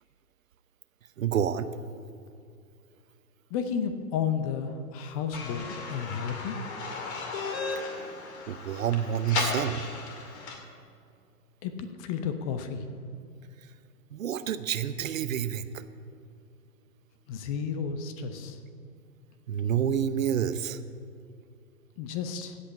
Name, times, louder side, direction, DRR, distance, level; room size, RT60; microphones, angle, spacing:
voice 1, 1.2-1.7 8.5-9.8 14.1-15.8 19.5-20.8, right 9 dB, 60° right, 12 dB, 0.8 m, -28 dB
voice 2, 3.5-6.6 11.6-12.8 17.3-18.6 22.0-22.6, left 7 dB, 25° left, 9 dB, 0.7 m, -32 dB
sound 1, 5.3-10.6, left 4 dB, 45° left, 2.5 m, -35 dB
16.0 x 5.7 x 8.4 m, 2.4 s
figure-of-eight pair, 115°, 46 cm